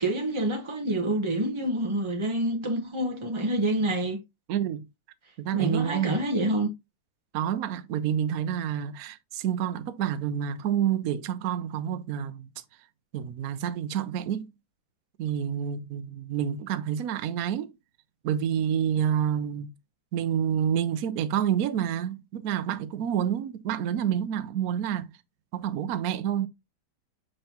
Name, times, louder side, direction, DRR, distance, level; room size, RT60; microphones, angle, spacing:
voice 1, 0.0-4.2 5.5-6.7, right 1 dB, 30° right, 0.6 m, -27 dB
voice 2, 4.5-4.9 5.4-6.2 7.3-12.5 13.1-14.5 15.2-17.7 18.2-19.7 20.1-25.1 25.5-26.5, right 9 dB, 65° right, 0.9 m, -28 dB
6.8 x 5.5 x 2.9 m
omnidirectional pair, 2.2 m